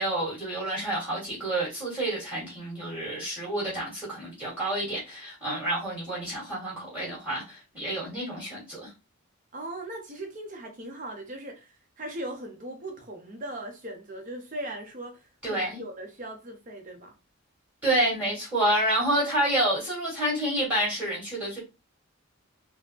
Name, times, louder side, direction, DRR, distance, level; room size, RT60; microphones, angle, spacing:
voice 1, 0.0-8.9 15.4-15.8 17.8-21.6, right 1 dB, 5° right, 1.7 m, -28 dB
voice 2, 9.5-17.1, right 1 dB, 35° right, 0.7 m, -39 dB
3.7 x 2.0 x 2.8 m
head